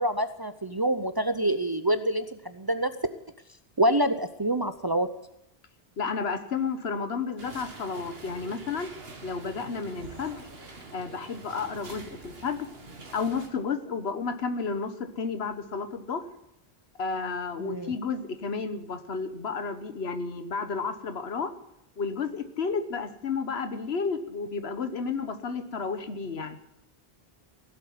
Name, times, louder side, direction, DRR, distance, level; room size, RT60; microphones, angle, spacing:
voice 1, 0.0-2.9 3.8-5.1 17.6-17.9, right 1 dB, 30° right, 10 dB, 0.5 m, -26 dB
voice 2, 6.0-8.9 9.2-10.5 10.9-12.7 13.1-16.2 17.0-21.5 22.0-26.6, left 5 dB, 80° left, 9 dB, 1.4 m, -32 dB
sound 1, 7.4-13.5, right 3 dB, 75° right, 1.9 m, -45 dB
17.0 x 7.9 x 9.3 m, 0.86 s
omnidirectional pair, 1.0 m